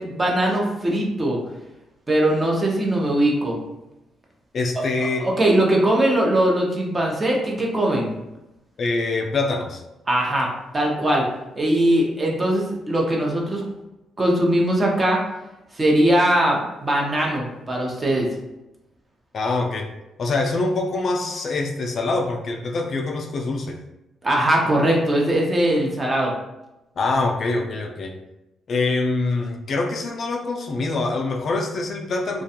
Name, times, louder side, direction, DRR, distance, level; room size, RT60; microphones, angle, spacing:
voice 1, 0.0-1.4 2.1-3.6 5.0-8.1 10.1-10.5 10.7-11.3 11.6-13.6 14.2-15.2 15.7-18.3 24.2-26.3, right 1 dB, 25° right, -1 dB, 0.6 m, -20 dB
voice 2, 4.5-5.3 8.8-9.8 19.3-19.9 20.2-23.8 27.0-28.2 28.7-32.4, left 3 dB, 55° left, 2 dB, 0.3 m, -24 dB
2.3 x 2.2 x 2.7 m, 0.93 s
cardioid pair, 90°, 0 cm